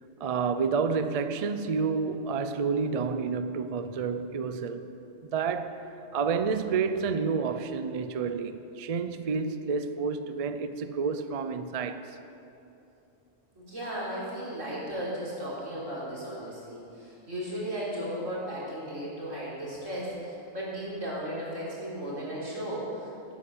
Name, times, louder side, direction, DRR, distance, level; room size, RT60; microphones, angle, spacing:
voice 1, 0.2-4.9 5.2-5.8 6.1-12.1, right 5 dB, 50° right, 0.4 m, -29 dB
voice 2, 13.6-23.3, equal, 75° right, 4.2 m, -35 dB
12.5 x 10.0 x 7.2 m
omnidirectional pair, 1.3 m